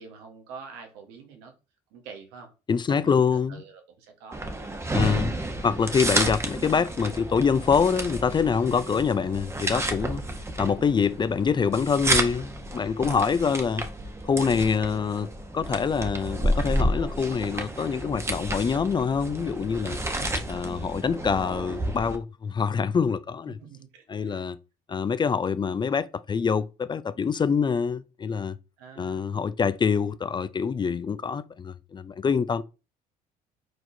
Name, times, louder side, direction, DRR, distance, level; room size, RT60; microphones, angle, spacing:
voice 1, 0.0-1.5 1.9-2.5 3.0-3.2 3.5-4.5 13.0-13.4 23.5-24.4 28.8-29.4, right 5 dB, 85° right, 1.3 m, -46 dB
voice 2, 2.7-3.6 4.9-5.3 5.6-10.2 10.6-13.8 14.2-20.0 20.5-23.6 24.1-24.6 24.9-28.6 29.0-32.6, left 6 dB, 25° left, 0.4 m, -25 dB
sound 1, 4.3-22.2, right 1 dB, 15° right, 0.9 m, -31 dB
4.7 x 4.1 x 2.6 m
supercardioid pair, 75°, 17 cm